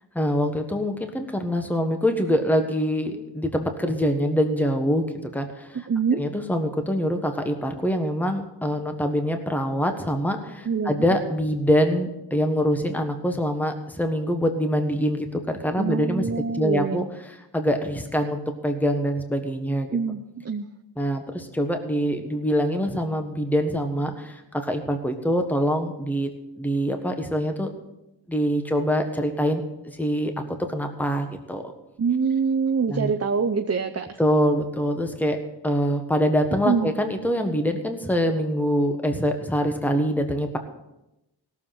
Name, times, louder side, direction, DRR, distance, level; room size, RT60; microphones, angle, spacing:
voice 1, 0.1-5.1 5.3-5.8 6.1-17.0 17.5-20.0 21.0-26.3 26.6-27.7 28.3-31.6 32.9-33.1 34.2-35.4 35.6-40.6, equal, 5° left, 5 dB, 1.4 m, -24 dB
voice 2, 5.9-6.2 10.7-11.0 15.8-17.1 19.9-20.7 32.0-34.2 36.6-36.9, right 5 dB, 35° right, 5 dB, 0.7 m, -25 dB
17.0 x 7.3 x 5.9 m, 0.91 s
wide cardioid pair, 70°, 45 cm